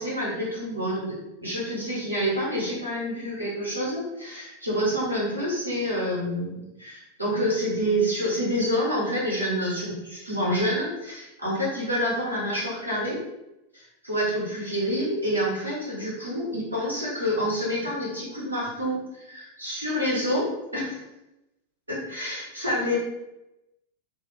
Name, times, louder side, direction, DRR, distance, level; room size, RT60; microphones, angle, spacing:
voice 1, 0.0-13.2 13.7-21.0 21.9-23.0, equal, 85° right, -6 dB, 0.9 m, -28 dB
2.3 x 2.0 x 2.9 m, 0.92 s
figure-of-eight pair, 90°, 0 cm